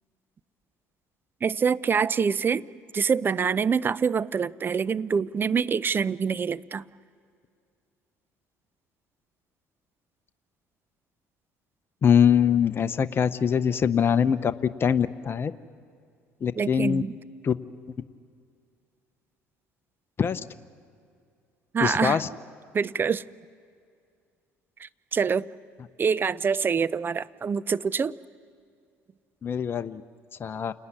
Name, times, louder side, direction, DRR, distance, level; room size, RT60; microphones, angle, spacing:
voice 1, 1.4-2.7 2.9-6.8 16.6-17.1 21.7-22.2 22.7-23.2 24.8-25.5 26.0-28.1, right 6 dB, 35° right, 18 dB, 0.7 m, -25 dB
voice 2, 12.0-14.5 14.8-15.5 16.4-17.0 17.4-17.5 20.2-20.4 21.8-22.3 29.4-30.0 30.4-30.7, left 7 dB, 35° left, 11 dB, 0.9 m, -23 dB
29.0 x 19.0 x 9.9 m, 2.3 s
hypercardioid pair, 70°, 6 cm